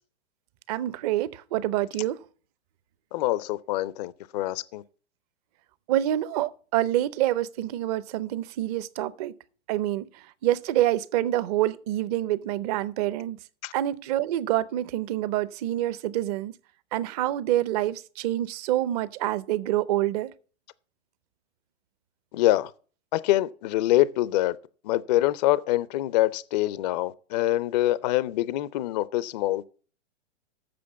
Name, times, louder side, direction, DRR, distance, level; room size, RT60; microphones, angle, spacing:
voice 1, 0.7-2.2 5.9-9.3 9.7-13.4 13.7-16.5 16.9-20.3, right 13 dB, 35° right, 0.6 m, -27 dB
voice 2, 3.1-4.8 13.6-13.7 22.3-22.7 23.1-24.6 24.8-29.7, left 15 dB, 40° left, 0.4 m, -25 dB
7.7 x 6.6 x 8.0 m
hypercardioid pair, 135°, 35 cm